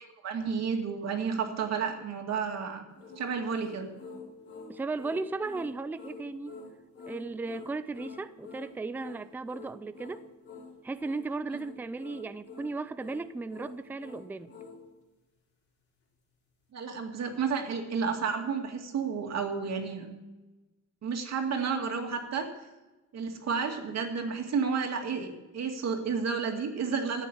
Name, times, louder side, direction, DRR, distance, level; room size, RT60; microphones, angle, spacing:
voice 1, 0.0-2.8 3.2-3.9 16.7-20.1 21.0-22.5 23.1-27.3, right 5 dB, 60° right, 3 dB, 2.2 m, -31 dB
sound 1, 3.0-14.8, left 4 dB, 45° left, 3.9 m, -47 dB
voice 2, 4.7-6.6 7.1-10.2 10.8-14.5, right 3 dB, 5° right, 12 dB, 0.4 m, -36 dB
14.5 x 9.0 x 8.2 m, 1.1 s
wide cardioid pair, 175°, 30 cm